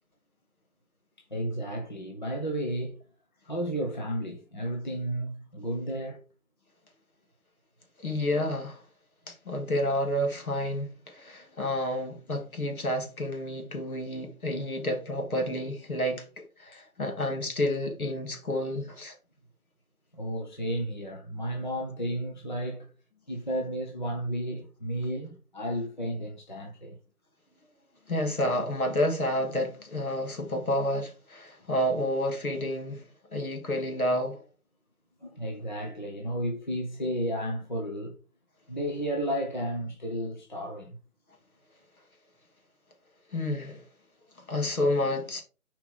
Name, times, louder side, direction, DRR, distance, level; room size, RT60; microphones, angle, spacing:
voice 1, 1.3-3.0 3.4-6.2 20.1-22.9 23.3-27.0 35.2-38.1 38.7-41.0, equal, 30° left, 0.9 m, -33 dB
voice 2, 8.0-8.8 9.3-19.1 28.1-33.0 33.3-34.4 43.3-43.8 44.4-45.4, left 1 dB, 70° left, 2.6 m, -30 dB
7.4 x 4.7 x 3.8 m
figure-of-eight pair, 170°, 44 cm